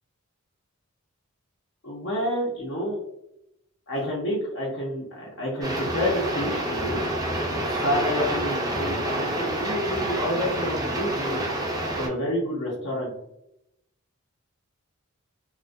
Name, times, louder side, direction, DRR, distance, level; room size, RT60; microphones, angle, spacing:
voice 1, 1.8-3.0 3.9-7.0 7.5-11.4 12.0-13.1, equal, 60° left, -5 dB, 0.6 m, -29 dB
sound 1, 5.6-12.1, right 1 dB, 15° right, 0.4 m, -28 dB
2.5 x 2.2 x 2.2 m, 0.81 s
head